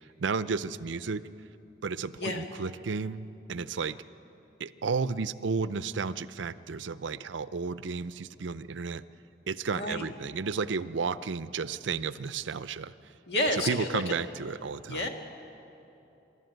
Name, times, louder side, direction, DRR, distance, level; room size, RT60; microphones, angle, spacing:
voice 1, 0.2-1.2 1.8-4.0 4.6-9.0 9.5-12.9 13.5-15.1, right 5 dB, 90° right, 15 dB, 0.6 m, -32 dB
voice 2, 9.7-10.1 13.3-14.0 14.9-15.1, left 1 dB, 65° left, 3 dB, 2.1 m, -30 dB
26.5 x 12.5 x 9.3 m, 3.0 s
head